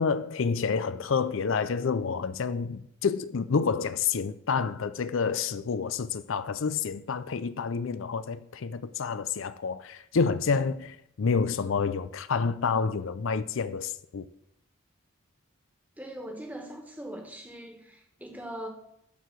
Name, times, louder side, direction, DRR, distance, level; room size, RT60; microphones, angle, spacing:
voice 1, 0.0-14.3, left 5 dB, 65° left, 0.5 m, -28 dB
voice 2, 16.0-18.7, right 1 dB, 10° right, 1.5 m, -41 dB
13.0 x 4.7 x 7.6 m
head